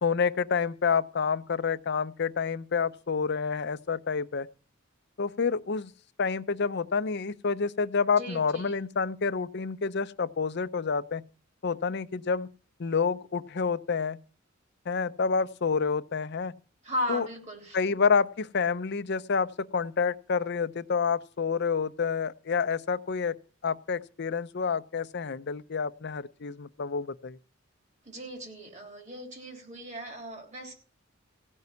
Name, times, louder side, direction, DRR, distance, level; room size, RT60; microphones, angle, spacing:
voice 1, 0.0-4.5 5.2-5.9 6.2-11.2 11.6-12.5 12.8-14.2 14.9-16.5 17.1-17.3 17.7-23.4 23.6-27.4, left 5 dB, 55° left, 0.6 m, -28 dB
voice 2, 8.1-8.8 16.8-17.8 28.0-30.7, equal, 35° right, 3.3 m, -37 dB
16.0 x 5.4 x 9.4 m
head